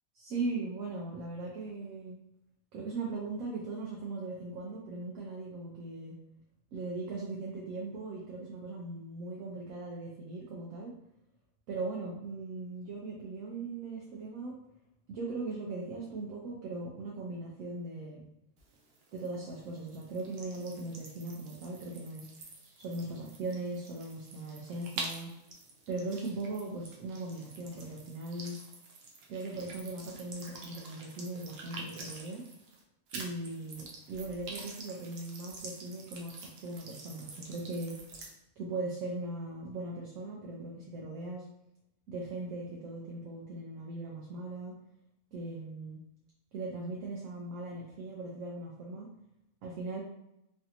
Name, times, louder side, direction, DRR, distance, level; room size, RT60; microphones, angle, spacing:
voice 1, 0.1-2.2 2.7-6.2 6.7-10.9 11.7-14.5 15.1-18.3 19.1-22.2 22.8-25.3 25.9-28.6 29.3-32.4 33.1-38.0 38.6-41.4 42.1-44.7 45.3-46.0 46.5-49.1 49.6-50.0, right 2 dB, 75° right, -3 dB, 1.0 m, -39 dB
sound 1, 18.6-32.8 33.1-38.3, right 3 dB, 60° right, 0.7 m, -47 dB
3.2 x 2.5 x 2.8 m, 0.82 s
omnidirectional pair, 1.5 m